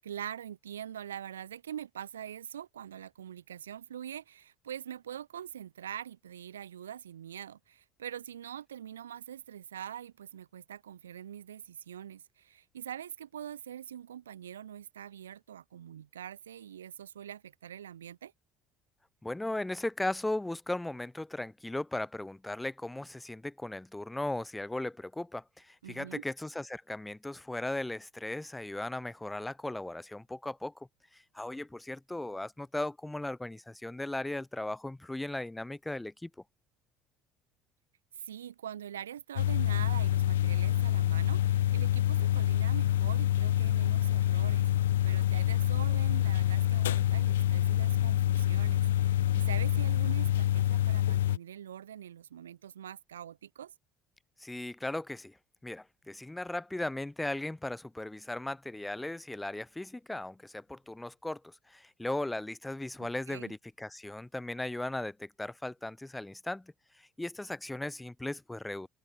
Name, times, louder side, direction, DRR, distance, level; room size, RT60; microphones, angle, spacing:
voice 1, 0.0-18.3 25.8-26.2 38.1-53.7 63.0-63.5, right 10 dB, 85° right, 7.8 m, -44 dB
voice 2, 19.2-30.9 31.1-36.3 54.4-55.4 55.6-68.9, left 1 dB, 10° left, 3.1 m, -37 dB
sound 1, 39.4-51.4, left 13 dB, 80° left, 0.6 m, -27 dB
open air
hypercardioid pair, 60°, 0 cm